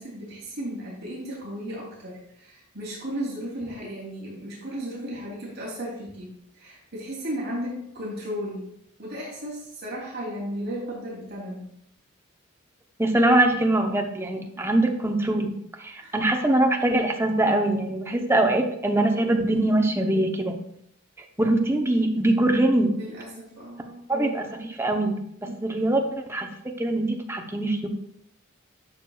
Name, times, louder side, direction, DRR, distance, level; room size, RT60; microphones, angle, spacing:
voice 1, 0.0-8.7 9.0-11.7 14.6-14.7 16.0-16.1 18.1-18.3 23.0-24.0 25.4-25.6, equal, 55° right, -5 dB, 2.9 m, -35 dB
voice 2, 13.0-20.6 21.4-23.0 24.1-27.9, right 1 dB, 10° right, 3 dB, 0.7 m, -23 dB
11.0 x 6.6 x 2.3 m, 0.74 s
head